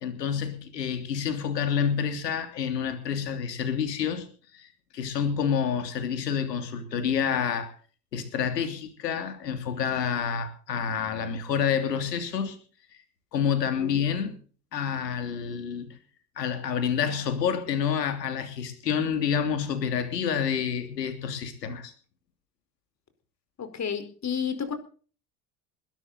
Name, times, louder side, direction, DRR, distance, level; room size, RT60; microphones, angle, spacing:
voice 1, 0.0-4.3 4.5-7.7 8.1-12.6 13.3-14.3 14.7-15.9 16.4-21.9, left 7 dB, 85° left, 8 dB, 3.2 m, -28 dB
voice 2, 23.6-24.7, left 7 dB, 35° left, 9 dB, 4.9 m, -31 dB
21.0 x 12.0 x 4.3 m, 0.40 s
hypercardioid pair, 70°, 48 cm